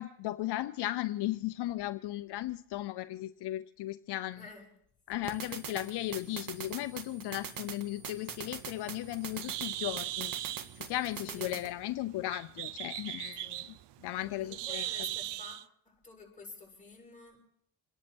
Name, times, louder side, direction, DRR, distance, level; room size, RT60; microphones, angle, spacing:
voice 1, 0.0-4.4 5.1-10.3 10.8-13.8 14.0-14.9, left 15 dB, 70° left, 12 dB, 0.7 m, -36 dB
voice 2, 4.4-4.7 5.2-5.4 11.2-11.6 13.4-13.7 14.2-15.6 15.9-17.4, left 3 dB, 20° left, -1 dB, 7.3 m, -50 dB
sound 1, 5.2-11.7, right 7 dB, 55° right, 1.7 m, -43 dB
Bird, 8.4-15.6, right 16 dB, 80° right, 0.8 m, -40 dB
28.5 x 10.5 x 4.5 m, 0.67 s
cardioid pair, 105°, 41 cm